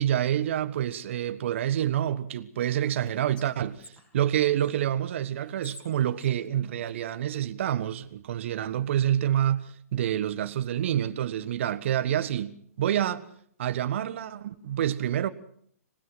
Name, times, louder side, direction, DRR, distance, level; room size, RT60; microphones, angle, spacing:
voice 1, 0.0-13.2 13.6-15.3, right 11 dB, 50° right, 1.4 m, -27 dB
Whispering, 2.8-4.8 5.4-7.5, left 1 dB, 10° left, 5.5 m, -52 dB
26.0 x 19.5 x 5.7 m
hypercardioid pair, 130°, 8 cm